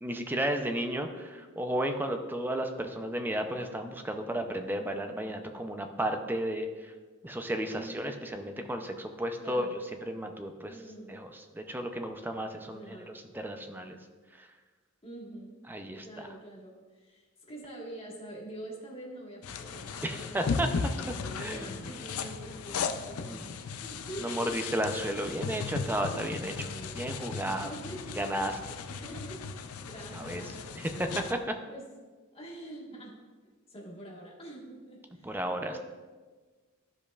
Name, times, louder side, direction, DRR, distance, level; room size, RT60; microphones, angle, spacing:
voice 1, 0.0-6.7 7.2-9.7 10.0-10.7 11.1-11.3 11.5-14.0 14.4-14.5 15.7-16.0 20.0-20.7 21.4-21.7 23.2-23.4 24.2-26.7 26.9-27.7 28.2-28.5 30.1-30.4 30.8-31.5 35.2-35.7, right 1 dB, 10° right, 6 dB, 0.5 m, -33 dB
voice 2, 9.4-9.8 10.6-11.2 12.6-13.2 15.0-15.6 16.0-24.7 26.4-27.0 27.4-28.3 28.9-29.4 29.8-31.0 31.7-31.8 32.3-33.1 33.4-35.4 35.7-35.8, right 1 dB, 30° left, -3 dB, 1.5 m, -45 dB
sound 1, 19.4-31.3, left 5 dB, 80° left, 0.5 m, -36 dB
12.5 x 5.1 x 2.4 m, 1.4 s
head